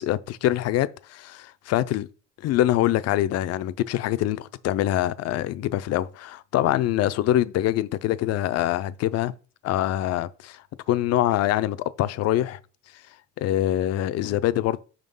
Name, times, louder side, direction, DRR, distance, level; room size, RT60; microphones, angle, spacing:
voice 1, 0.0-2.1 2.4-9.3 9.6-12.6 13.4-14.8, left 13 dB, 60° left, 0.5 m, -24 dB
5.7 x 3.7 x 5.4 m
cardioid pair, 140°, 29 cm